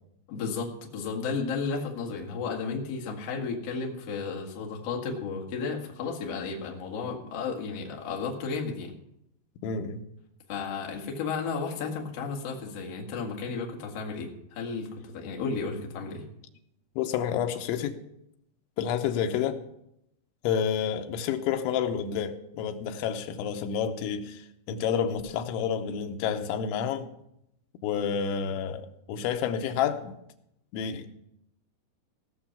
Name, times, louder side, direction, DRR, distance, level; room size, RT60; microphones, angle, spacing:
voice 1, 0.3-8.9 10.5-16.2, left 4 dB, 50° left, 2.1 m, -33 dB
voice 2, 9.6-10.0 17.0-18.0 18.8-19.6 20.4-27.1 27.8-30.2 30.7-31.1, left 8 dB, 85° left, 3.3 m, -29 dB
17.5 x 6.7 x 5.8 m
omnidirectional pair, 5.3 m